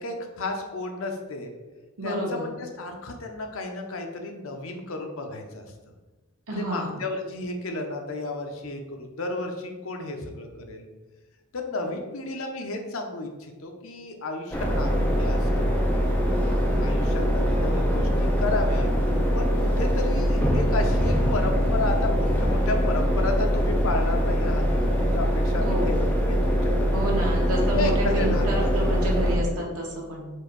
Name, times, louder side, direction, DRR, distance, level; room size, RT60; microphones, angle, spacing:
voice 1, 0.0-1.5 2.0-5.7 6.5-10.8 11.5-15.8 16.8-18.9 19.3-24.6 25.0-27.0 27.8-28.5, left 2 dB, 65° left, 3 dB, 0.7 m, -32 dB
voice 2, 2.0-2.4 6.5-7.0 19.5-19.7 25.6-25.9 26.9-30.3, right 1 dB, 85° right, -2 dB, 1.3 m, -29 dB
sound 1, 14.5-29.4, equal, 10° left, 0.6 m, -23 dB
4.5 x 2.6 x 4.6 m, 1.2 s
head